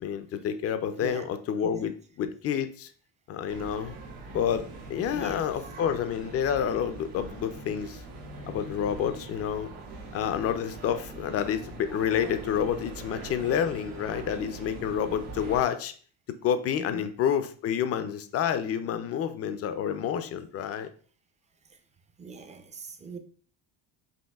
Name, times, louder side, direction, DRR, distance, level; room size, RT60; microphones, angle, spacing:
voice 1, 0.0-2.9 3.3-3.9 4.3-4.6 4.9-8.0 8.5-9.7 10.1-15.9 16.4-20.9, left 8 dB, 35° left, 0.4 m, -29 dB
sound 1, 3.5-15.6, right 3 dB, 80° right, 1.4 m, -42 dB
voice 2, 22.2-23.2, right 4 dB, 15° right, 0.5 m, -41 dB
5.4 x 2.6 x 3.4 m
cardioid pair, 135°, 42 cm